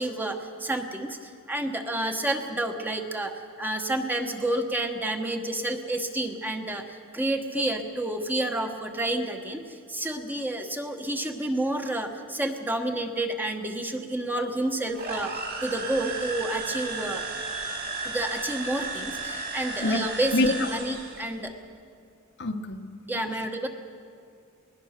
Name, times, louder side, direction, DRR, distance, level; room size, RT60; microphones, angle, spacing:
voice 1, 0.0-17.2 18.0-21.5 23.1-23.7, right 1 dB, 10° right, 4 dB, 1.3 m, -30 dB
sound 1, 14.9-21.3, right 3 dB, 45° right, 2.9 m, -34 dB
voice 2, 20.3-20.8 22.4-22.8 23.1-23.3, left 1 dB, 55° left, 7 dB, 1.2 m, -26 dB
20.0 x 20.0 x 6.7 m, 2.3 s
head